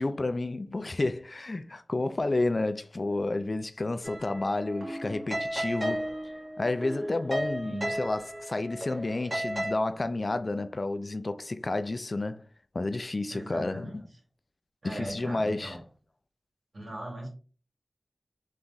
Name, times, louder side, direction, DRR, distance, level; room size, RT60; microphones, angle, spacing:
voice 1, 0.0-6.1 6.6-12.4 12.7-13.9 14.8-15.8, left 2 dB, 50° left, 0.4 m, -30 dB
sound 1, 4.0-9.7, equal, 40° right, 1.7 m, -34 dB
voice 2, 7.6-7.9 13.3-14.1 14.8-15.8 16.7-17.3, right 1 dB, 70° right, 2.4 m, -39 dB
3.5 x 3.2 x 4.0 m
wide cardioid pair, 60°, 0 cm